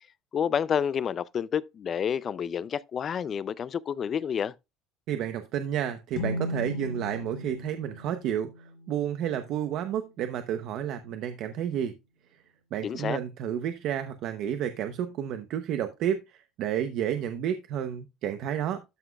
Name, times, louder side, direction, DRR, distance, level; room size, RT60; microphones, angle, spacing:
voice 1, 0.3-4.5 12.8-13.2, left 8 dB, 30° left, 0.4 m, -29 dB
voice 2, 5.1-11.9 12.3-12.4 12.7-18.8, right 10 dB, 55° right, 0.8 m, -31 dB
sound 1, 6.1-9.7, left 1 dB, 45° left, 2.0 m, -37 dB
12.5 x 6.0 x 2.3 m
cardioid pair, 165°, 0 cm